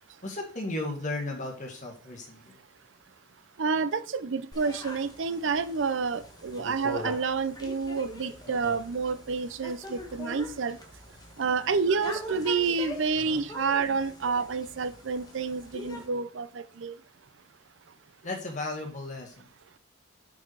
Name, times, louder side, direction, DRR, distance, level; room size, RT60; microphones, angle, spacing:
voice 1, 0.2-2.4 18.2-19.5, left 2 dB, 40° left, 2 dB, 1.9 m, -35 dB
voice 2, 3.6-10.8 11.4-17.0, right 5 dB, 70° right, 14 dB, 0.6 m, -29 dB
sound 1, 4.5-16.1, left 2 dB, 20° left, 1.4 m, -43 dB
6.0 x 5.9 x 4.7 m, 0.43 s
head